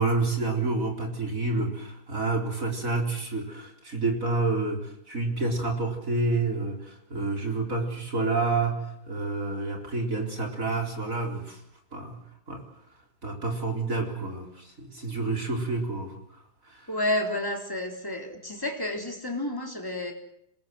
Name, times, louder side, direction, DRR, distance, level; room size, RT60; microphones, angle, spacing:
voice 1, 0.0-8.8 9.1-11.6 11.9-12.2 12.5-12.6 13.2-16.2 16.7-16.8, right 3 dB, 40° right, 2 dB, 4.5 m, -28 dB
voice 2, 16.9-20.1, left 1 dB, 10° left, 3 dB, 3.5 m, -30 dB
26.5 x 21.0 x 7.8 m, 0.76 s
omnidirectional pair, 2.2 m